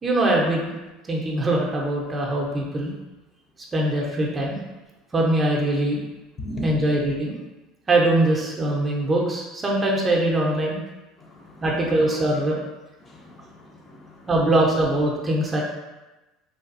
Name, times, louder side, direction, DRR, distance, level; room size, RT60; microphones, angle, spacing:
voice 1, 0.0-0.7 1.1-2.9 3.7-4.6 5.1-6.0 6.6-7.3 7.9-10.8 11.6-12.6 14.3-15.6, right 1 dB, 25° right, -2 dB, 0.6 m, -22 dB
voice 2, 6.4-6.7 11.2-11.7 13.0-14.3, right 1 dB, 30° left, -1 dB, 0.5 m, -37 dB
3.3 x 2.2 x 2.5 m, 1.1 s
supercardioid pair, 110°, 0 cm